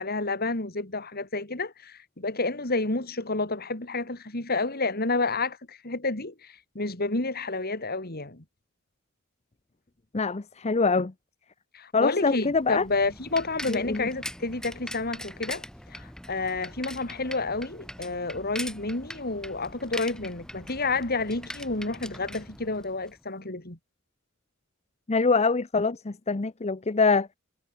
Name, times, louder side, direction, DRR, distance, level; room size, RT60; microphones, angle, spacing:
voice 1, 0.0-8.4 11.7-23.8, left 3 dB, 50° left, 3.6 m, -30 dB
voice 2, 10.1-11.1 11.9-12.8 13.7-14.1 25.1-27.3, left 4 dB, 30° left, 0.7 m, -24 dB
Bicycle, 12.3-23.2, left 1 dB, 5° left, 5.1 m, -42 dB
head